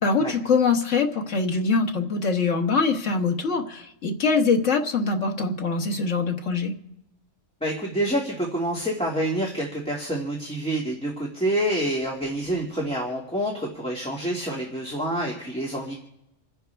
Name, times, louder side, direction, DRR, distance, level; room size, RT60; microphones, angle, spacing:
voice 1, 0.0-6.7, left 4 dB, 75° left, 3 dB, 1.8 m, -23 dB
voice 2, 7.6-16.0, right 1 dB, 5° left, -3 dB, 2.2 m, -27 dB
29.0 x 10.5 x 3.5 m, 0.85 s
omnidirectional pair, 1.3 m